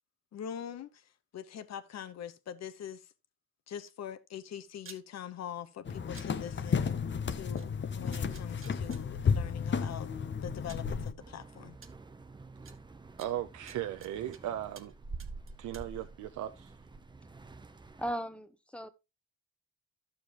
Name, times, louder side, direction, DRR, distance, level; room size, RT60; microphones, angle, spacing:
voice 1, 0.3-0.9 1.3-3.0 3.7-6.9 7.3-7.7 7.9-10.1 10.4-11.8, left 9 dB, 60° left, 1.1 m, -43 dB
sound 1, 4.9-5.0 6.1-6.3 7.6-7.7 8.1-9.0 10.1-10.2 10.7-10.9 11.8-11.9 12.7-12.8 13.2-14.4 14.8-14.9 15.2-15.9, right 6 dB, 45° right, 1.4 m, -52 dB
sound 2, 5.9-11.1, left 6 dB, 40° left, 0.9 m, -32 dB
sound 3, 11.2-18.1, right 3 dB, 15° right, 0.7 m, -48 dB
voice 2, 13.2-14.9 15.6-16.7, right 12 dB, 75° right, 0.7 m, -37 dB
voice 3, 18.0-18.9, equal, 5° left, 1.0 m, -37 dB
11.5 x 7.1 x 3.0 m
cardioid pair, 90°, 30 cm